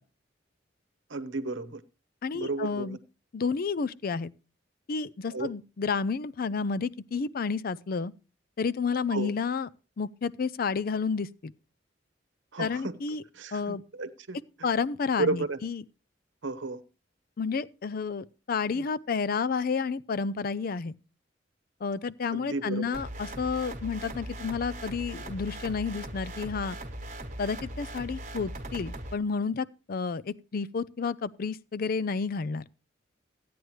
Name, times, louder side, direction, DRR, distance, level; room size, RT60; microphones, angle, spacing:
voice 1, 1.1-1.8 2.3-3.0 5.3-5.5 9.1-9.3 12.5-13.0 13.4-14.4 15.2-15.6 16.4-16.8 18.7-18.9 22.3-22.9, right 3 dB, 85° right, 0.9 m, -33 dB
voice 2, 2.2-3.0 3.3-4.3 4.9-8.1 8.6-9.7 10.0-11.5 12.6-13.2 13.5-13.8 14.6-15.8 17.4-21.0 21.8-26.8 27.4-32.6, left 5 dB, 50° left, 0.5 m, -31 dB
sound 1, 22.9-29.1, right 1 dB, 40° right, 1.4 m, -39 dB
15.0 x 9.4 x 3.1 m
head